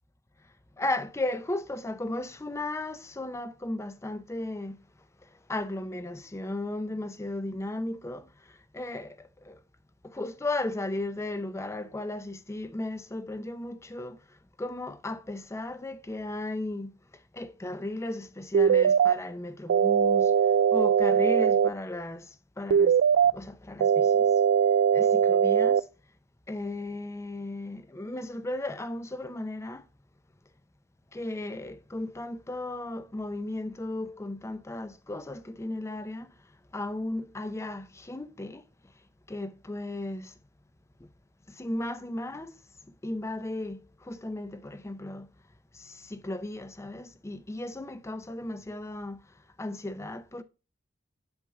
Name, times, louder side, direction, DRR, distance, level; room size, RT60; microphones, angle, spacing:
voice 1, 0.8-4.8 5.5-8.3 8.7-9.2 9.4-9.6 10.0-14.2 14.6-16.9 17.3-20.3 20.7-22.3 22.6-23.0 23.3-24.3 24.9-25.8 26.5-29.9 31.1-36.3 36.7-38.6 39.3-40.3 41.6-42.5 43.0-45.3 45.7-49.2 49.6-50.4, left 2 dB, 15° left, 0.5 m, -35 dB
sound 1, 18.5-19.1 19.7-21.7 22.7-23.3 23.8-25.8, right 7 dB, 75° right, 0.3 m, -21 dB
7.9 x 6.8 x 2.3 m
head